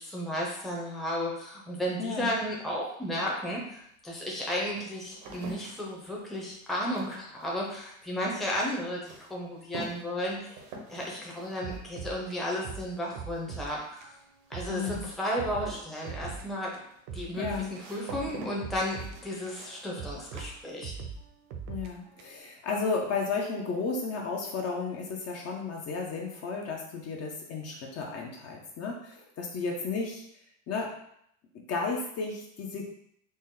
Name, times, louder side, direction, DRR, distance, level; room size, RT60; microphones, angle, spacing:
voice 1, 0.0-10.5 10.9-14.1 14.5-16.7 17.1-20.9, equal, ahead, -4 dB, 0.8 m, -33 dB
voice 2, 2.0-2.3 14.7-15.1 17.4-17.7 21.7-30.2 30.7-30.9 31.7-32.9, left 4 dB, 35° left, -1 dB, 0.8 m, -33 dB
sound 1, 3.3-3.4 4.1-21.2 21.5-22.1, right 1 dB, 75° right, 1.2 m, -48 dB
sound 2, 11.6-13.8 14.0-14.2 14.5-16.5 16.7-19.6 20.0-22.5, right 6 dB, 55° right, 0.7 m, -42 dB
4.1 x 2.0 x 3.8 m, 0.72 s
supercardioid pair, 115°, 40 cm